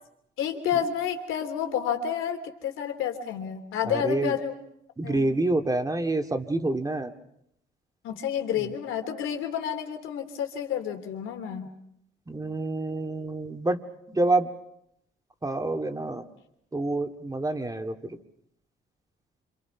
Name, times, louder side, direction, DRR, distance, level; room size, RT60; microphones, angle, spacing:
voice 1, 0.4-4.5 5.0-5.2 8.0-11.7, left 8 dB, 85° left, 5 dB, 3.1 m, -30 dB
voice 2, 3.9-4.3 5.0-7.1 12.3-13.8 14.1-14.5 15.4-16.2 16.7-18.0, right 2 dB, 20° right, 5 dB, 2.2 m, -27 dB
27.5 x 26.5 x 6.0 m, 0.77 s
cardioid pair, 90°, 20 cm